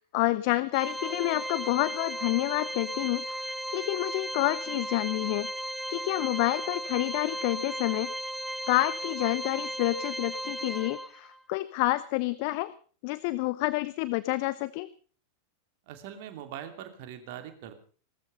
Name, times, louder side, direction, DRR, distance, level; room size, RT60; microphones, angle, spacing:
voice 1, 0.1-5.5 5.9-8.1 8.7-12.7 13.0-14.9, left 19 dB, 45° left, 17 dB, 0.7 m, -29 dB
Organ, 0.7-11.4, right 1 dB, ahead, 0.7 m, -36 dB
voice 2, 15.9-17.8, right 10 dB, 50° right, 8 dB, 2.8 m, -42 dB
19.0 x 13.5 x 5.3 m, 0.42 s
figure-of-eight pair, 90°, 0 cm